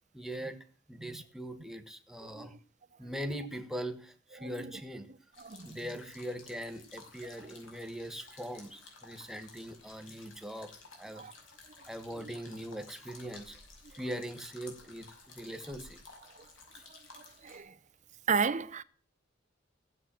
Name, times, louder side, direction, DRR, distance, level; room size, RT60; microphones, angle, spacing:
voice 1, 0.1-0.6 0.9-2.5 3.0-5.1 5.6-10.7 11.0-11.2 11.9-13.6 14.0-15.1 15.3-16.0, equal, ahead, 1.4 m, -41 dB
voice 2, 2.2-2.6 4.4-4.7 5.4-5.8 7.4-7.5 11.1-11.3 12.2-12.3 16.9-17.8 18.3-18.8, right 5 dB, 40° right, 0.7 m, -34 dB
sound 1, 5.3-17.6, left 3 dB, 80° left, 5.5 m, -54 dB
15.5 x 7.9 x 7.6 m
head